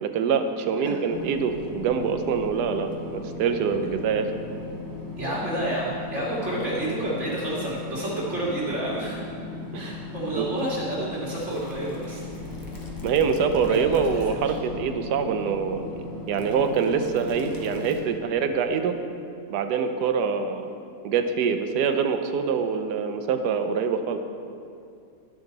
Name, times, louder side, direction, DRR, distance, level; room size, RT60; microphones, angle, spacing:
voice 1, 0.0-4.3 9.7-9.9 10.3-10.4 13.0-15.9 16.3-19.0 19.5-20.7 21.0-24.2, right 6 dB, 90° right, 7 dB, 1.2 m, -25 dB
sound 1, 1.1-18.0, left 3 dB, 15° left, 0.7 m, -37 dB
voice 2, 5.2-9.2 9.7-12.2 13.6-14.0 14.3-14.4, right 1 dB, 45° right, -7 dB, 2.6 m, -29 dB
11.5 x 6.6 x 4.0 m, 2.5 s
omnidirectional pair, 1.7 m